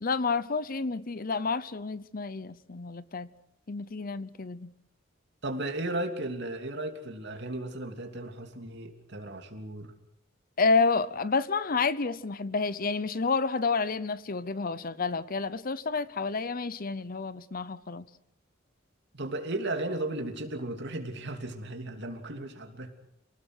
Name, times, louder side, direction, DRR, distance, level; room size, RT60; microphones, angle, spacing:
voice 1, 0.0-3.3 3.7-4.7 10.6-18.1, left 4 dB, 45° left, 0.7 m, -29 dB
voice 2, 5.4-9.9 19.1-22.9, right 1 dB, 60° right, 3.0 m, -35 dB
28.5 x 19.0 x 6.3 m
head